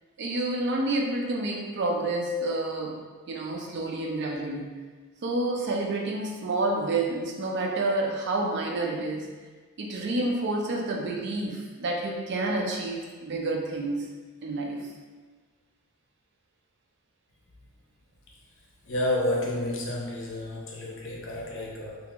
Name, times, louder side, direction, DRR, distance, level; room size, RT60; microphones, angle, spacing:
voice 1, 0.2-3.0 3.3-4.7 5.2-9.3 9.8-14.2 14.4-14.9, right 2 dB, 50° right, 0 dB, 0.4 m, -29 dB
voice 2, 18.9-22.0, left 1 dB, 60° left, -3 dB, 0.6 m, -30 dB
2.9 x 2.0 x 3.4 m, 1.4 s
head